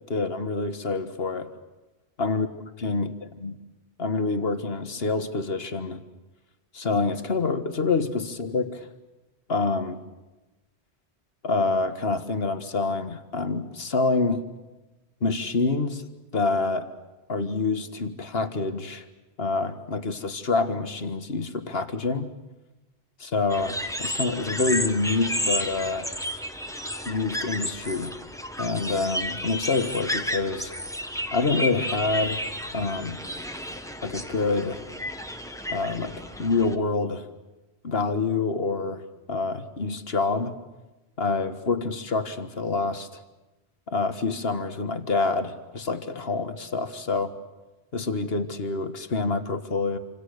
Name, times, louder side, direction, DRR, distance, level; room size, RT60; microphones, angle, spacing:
voice 1, 0.1-1.5 2.2-2.5 2.8-3.1 3.4-3.5 4.0-6.0 6.7-8.9 9.5-10.0 11.4-14.5 15.2-16.0 16.3-16.9 17.3-19.1 19.4-22.3 23.2-26.1 27.1-28.1 28.6-30.7 31.3-32.4 32.7-33.2 34.0-34.8 35.7-37.3 37.8-39.0 39.3-40.6 41.2-43.2 43.9-47.3 47.9-50.0, left 3 dB, 65° left, 9 dB, 1.9 m, -27 dB
sound 1, 23.5-36.8, equal, 5° left, 1.5 m, -32 dB
28.0 x 26.5 x 6.6 m, 1.1 s
omnidirectional pair, 1.1 m